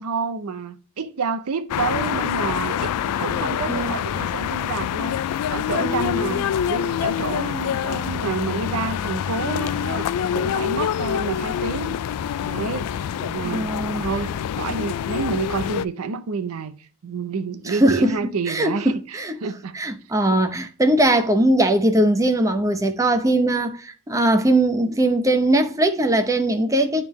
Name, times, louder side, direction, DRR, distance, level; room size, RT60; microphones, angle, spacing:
voice 1, 0.0-12.0 12.4-16.8 17.0-19.8 20.3-20.4, right 5 dB, 70° right, 0.5 m, -29 dB
sound 1, 1.7-15.8, left 9 dB, 85° left, 0.3 m, -26 dB
voice 2, 5.8-6.5 13.5-14.0 17.7-18.1 18.5-19.3 19.7-27.0, right 1 dB, 15° right, 0.7 m, -20 dB
10.5 x 3.5 x 3.0 m
head